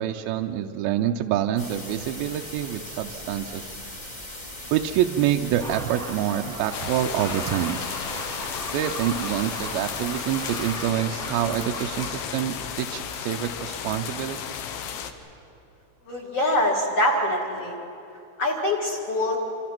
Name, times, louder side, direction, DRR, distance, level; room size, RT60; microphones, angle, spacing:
voice 1, 0.0-3.7 4.7-7.8 8.7-14.4, right 11 dB, 80° right, 4 dB, 2.3 m, -26 dB
sound 1, 1.6-10.8, left 1 dB, 20° left, 1.1 m, -39 dB
sound 2, 5.6-12.2, right 1 dB, 5° right, 1.4 m, -38 dB
sound 3, 6.7-15.1, left 8 dB, 70° left, 2.7 m, -34 dB
voice 2, 16.1-17.8 18.4-19.4, left 1 dB, 50° left, -3 dB, 2.3 m, -24 dB
27.5 x 25.5 x 6.0 m, 2.7 s
omnidirectional pair, 4.8 m